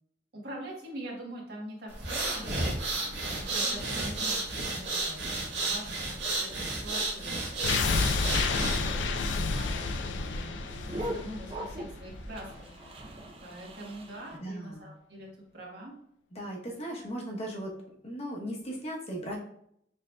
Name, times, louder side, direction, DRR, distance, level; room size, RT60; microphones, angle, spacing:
voice 1, 0.3-2.6 3.2-9.0 9.6-15.9, right 1 dB, 60° right, -2 dB, 1.2 m, -44 dB
sound 1, 1.9-9.0, right 2 dB, 85° right, 1.2 m, -32 dB
sound 2, 7.6-12.6 12.9-13.0, left 4 dB, 80° left, 0.4 m, -30 dB
sound 3, 9.2-14.4, right 1 dB, 30° right, 0.5 m, -42 dB
voice 2, 14.4-14.9 16.3-17.7 18.0-19.4, right 1 dB, 35° left, -1 dB, 0.9 m, -37 dB
6.0 x 2.7 x 2.2 m, 0.71 s
head